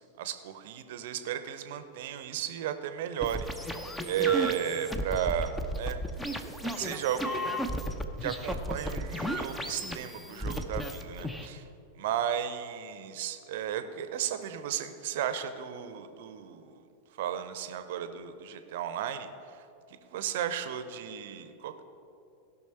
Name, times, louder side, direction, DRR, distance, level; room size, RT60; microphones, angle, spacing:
voice 1, 0.2-3.5 4.0-6.0 6.6-7.6 8.2-11.7 12.0-16.8 17.1-21.7, right 9 dB, 55° right, 10 dB, 0.7 m, -34 dB
sound 1, 3.2-11.5, equal, 5° left, 0.7 m, -34 dB
17.0 x 5.9 x 4.5 m, 2.7 s
figure-of-eight pair, 90°, 0 cm